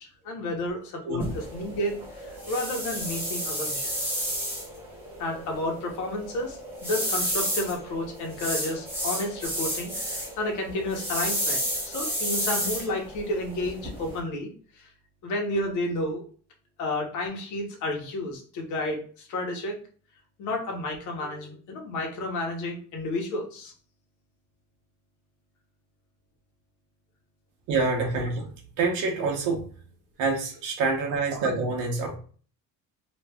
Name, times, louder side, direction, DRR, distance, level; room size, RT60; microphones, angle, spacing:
voice 1, 0.2-4.2 5.2-11.6 11.9-14.5 14.7-14.9 15.2-16.2 16.8-19.8 20.4-23.7, left 1 dB, 65° left, 1 dB, 1.1 m, -31 dB
sound 1, 1.2-14.2, equal, 5° right, 0.8 m, -32 dB
voice 2, 27.7-29.7 30.2-32.2, right 3 dB, 70° right, 1 dB, 1.0 m, -27 dB
3.1 x 2.5 x 3.4 m, 0.42 s
cardioid pair, 180°, 32 cm